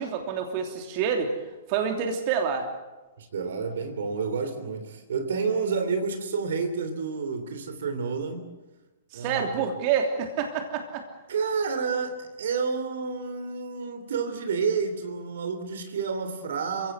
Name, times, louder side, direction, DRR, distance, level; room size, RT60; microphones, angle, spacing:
voice 1, 0.0-1.3 1.7-2.7 9.1-11.1, right 7 dB, 40° right, 4 dB, 3.0 m, -27 dB
voice 2, 3.2-8.5 9.1-9.4 11.3-16.9, right 5 dB, 60° right, 8 dB, 3.2 m, -29 dB
29.5 x 16.5 x 8.2 m, 1.2 s
figure-of-eight pair, 110°, 0 cm